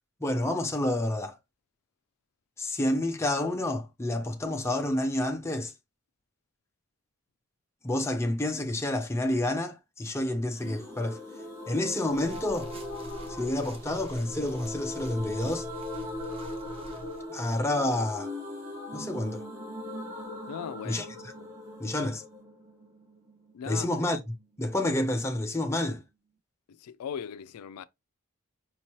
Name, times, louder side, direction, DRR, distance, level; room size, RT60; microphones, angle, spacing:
voice 1, 0.2-1.4 2.6-5.7 7.8-11.2 11.7-12.7 13.4-15.7 17.3-18.3 18.9-19.4 20.8-21.1 21.8-22.2 23.7-26.0, left 1 dB, 10° left, 0.6 m, -29 dB
sound 1, 10.5-24.2 24.4-24.5 24.7-24.8, left 1 dB, 60° right, 1.8 m, -40 dB
sound 2, 12.1-17.2, equal, 25° right, 0.7 m, -45 dB
voice 2, 20.5-21.0 23.5-23.9 26.7-27.8, left 8 dB, 85° left, 0.3 m, -38 dB
5.3 x 2.8 x 2.9 m
head